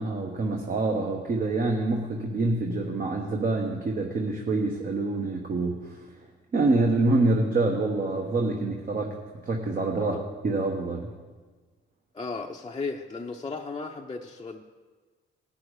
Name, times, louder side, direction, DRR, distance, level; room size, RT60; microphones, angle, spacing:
voice 1, 0.0-5.9 6.5-9.1 9.4-10.1 10.4-11.1, right 2 dB, 45° right, 1 dB, 1.2 m, -26 dB
voice 2, 12.1-14.6, left 4 dB, 20° left, 0 dB, 0.6 m, -35 dB
17.5 x 6.0 x 4.8 m, 1.4 s
cardioid pair, 90°, 20 cm